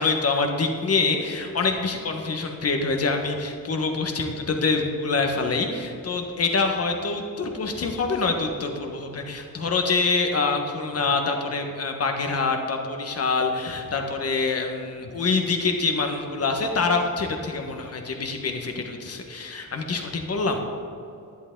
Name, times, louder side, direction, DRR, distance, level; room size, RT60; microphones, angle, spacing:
voice 1, 0.0-20.6, left 4 dB, 45° left, 4 dB, 1.3 m, -25 dB
11.0 x 11.0 x 3.8 m, 2.6 s
wide cardioid pair, 145°, 35 cm